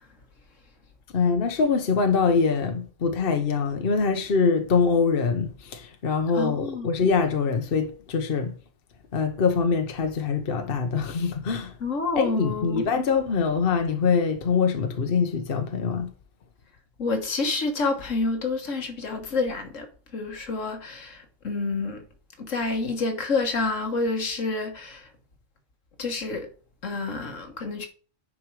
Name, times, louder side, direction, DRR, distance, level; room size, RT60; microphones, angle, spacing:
voice 1, 1.1-8.5 9.1-11.8 12.1-16.1, left 5 dB, 50° left, 1.1 m, -24 dB
voice 2, 6.3-6.9 11.8-12.8 17.0-19.9 20.1-22.0 22.4-25.1 26.0-26.5 26.8-27.9, left 3 dB, 75° left, 1.8 m, -28 dB
9.6 x 5.5 x 4.7 m
omnidirectional pair, 1.3 m